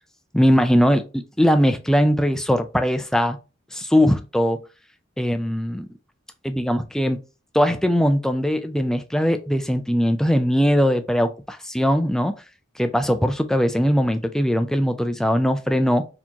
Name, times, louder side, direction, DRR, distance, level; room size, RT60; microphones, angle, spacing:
voice 1, 0.3-3.4 3.7-4.6 5.2-5.9 6.4-7.2 7.5-12.3 12.8-16.1, equal, 5° left, 0.3 m, -20 dB
4.3 x 2.9 x 2.8 m
head